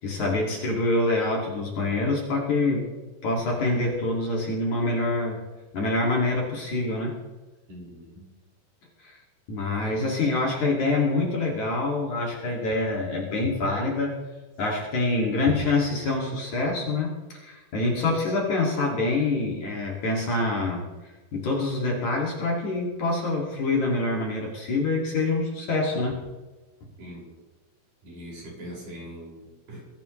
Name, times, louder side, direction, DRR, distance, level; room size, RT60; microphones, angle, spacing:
voice 1, 0.0-2.9 3.2-5.4 5.7-7.2 9.0-9.2 9.5-14.2 14.6-20.9 21.3-26.2, left 2 dB, 50° left, -3 dB, 3.6 m, -26 dB
voice 2, 7.7-8.3 9.8-10.0 27.0-27.3 28.0-29.8, equal, 55° right, -3 dB, 7.5 m, -42 dB
23.5 x 16.5 x 3.3 m, 1.3 s
omnidirectional pair, 4.7 m